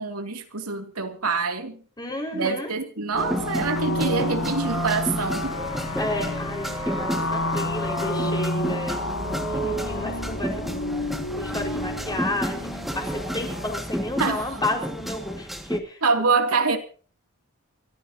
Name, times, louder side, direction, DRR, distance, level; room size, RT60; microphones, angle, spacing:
voice 1, 0.0-1.8 2.3-5.6 14.2-14.4 16.0-16.8, right 4 dB, 90° right, 2.7 m, -25 dB
voice 2, 2.0-2.7 6.0-11.1 11.3-16.0, left 1 dB, 20° left, 5.1 m, -32 dB
sound 1, 3.1-13.8, left 1 dB, 80° left, 5.1 m, -30 dB
sound 2, 3.2-15.8, equal, ahead, 1.9 m, -32 dB
29.0 x 14.5 x 2.9 m
head